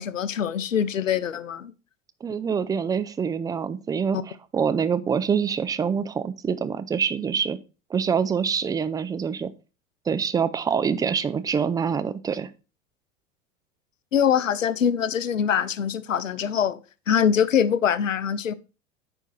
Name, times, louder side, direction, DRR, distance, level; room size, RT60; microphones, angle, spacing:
voice 1, 0.0-1.7 4.1-4.2 14.1-16.8 17.1-18.5, left 8 dB, 80° left, 0.7 m, -23 dB
voice 2, 2.2-7.6 7.9-9.5 10.1-12.5, right 6 dB, 10° right, 0.4 m, -25 dB
9.0 x 5.4 x 4.2 m
figure-of-eight pair, 80°, 38 cm